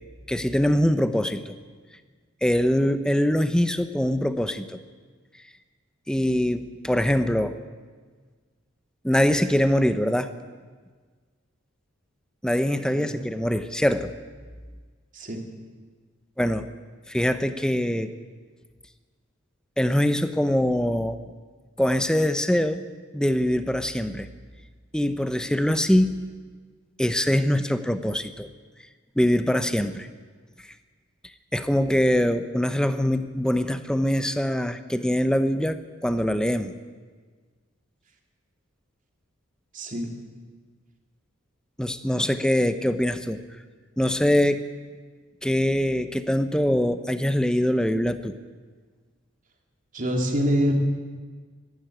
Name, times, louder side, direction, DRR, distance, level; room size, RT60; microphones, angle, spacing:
voice 1, 0.3-1.5 2.4-4.8 6.1-7.6 9.0-10.3 12.4-14.1 16.4-16.7 17.1-18.1 19.8-21.2 21.8-22.8 23.1-24.3 24.9-26.2 27.0-28.5 29.2-30.1 31.5-36.7 41.8-43.4 44.0-44.6 45.4-48.4, equal, 5° left, 10 dB, 0.8 m, -23 dB
voice 2, 39.7-40.1 49.9-50.7, equal, 40° right, 2 dB, 3.0 m, -25 dB
25.0 x 12.0 x 9.3 m, 1.5 s
head